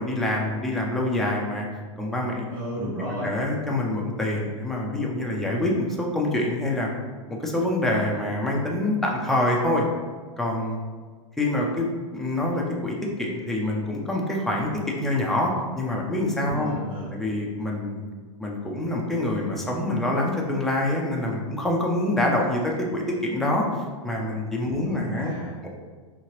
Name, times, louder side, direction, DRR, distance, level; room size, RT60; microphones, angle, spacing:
voice 1, 0.0-1.7 2.0-2.5 2.8-2.9 3.2-6.9 7.3-9.8 10.4-10.8 11.4-11.9 12.1-16.7 17.1-18.1 18.4-23.7 24.0-25.3 25.6-25.7, left 1 dB, ahead, -2 dB, 0.3 m, -26 dB
voice 2, 2.5-3.3 16.5-17.1 24.6-25.6, right 1 dB, 85° right, -9 dB, 1.2 m, -34 dB
2.8 x 2.8 x 2.9 m, 1.5 s
supercardioid pair, 140°, 17 cm